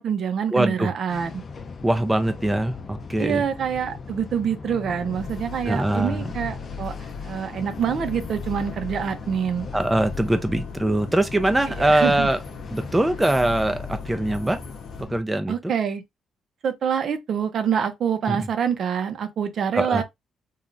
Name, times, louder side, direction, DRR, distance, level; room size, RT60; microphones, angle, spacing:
voice 1, 0.0-1.4 3.2-7.0 7.2-9.7 11.8-12.3 15.5-16.0 16.6-20.0, right 7 dB, 60° right, 0.6 m, -26 dB
voice 2, 0.5-0.9 1.8-3.4 5.7-6.3 9.7-12.4 12.7-14.6 15.0-15.7 18.3-18.5 19.7-20.0, right 1 dB, 10° right, 0.4 m, -22 dB
sound 1, 1.1-15.2, left 4 dB, 40° left, 0.5 m, -39 dB
sound 2, 5.2-15.1, left 5 dB, 90° left, 0.7 m, -38 dB
3.0 x 2.3 x 2.5 m
cardioid pair, 90°, 0 cm